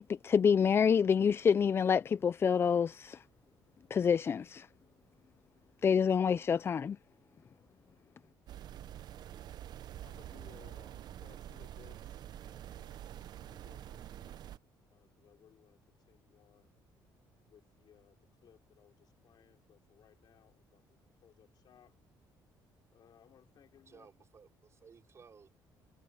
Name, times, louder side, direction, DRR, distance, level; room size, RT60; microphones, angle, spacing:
voice 1, 0.0-3.2 3.9-4.7 5.8-7.0, left 7 dB, 30° left, 0.3 m, -27 dB
sound 1, 8.5-14.6, right 11 dB, 55° right, 0.5 m, -47 dB
voice 2, 10.0-13.0 13.4-14.4 14.9-16.7 17.4-22.0 22.9-24.1, left 9 dB, 55° left, 5.4 m, -63 dB
voice 3, 23.8-25.5, right 6 dB, 35° right, 4.9 m, -58 dB
cardioid pair, 130°, 8 cm